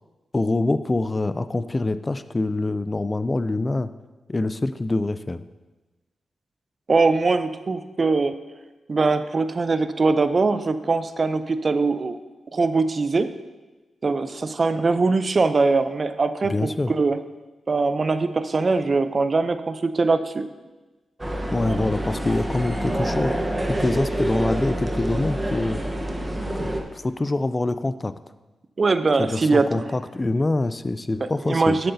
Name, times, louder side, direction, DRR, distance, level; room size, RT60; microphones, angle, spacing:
voice 1, 0.3-3.9 4.3-5.4 16.4-16.9 21.5-25.8 26.5-28.1 29.2-31.8, left 2 dB, 25° left, 13 dB, 0.3 m, -25 dB
voice 2, 6.9-8.4 8.9-12.2 12.5-13.3 14.0-17.2 17.7-20.5 21.7-21.9 28.8-29.8 31.2-31.9, right 3 dB, 45° right, 11 dB, 0.5 m, -22 dB
sound 1, 21.2-26.8, right 1 dB, 15° right, 0.9 m, -27 dB
11.0 x 7.7 x 2.7 m, 1.2 s
cardioid pair, 75°, 0 cm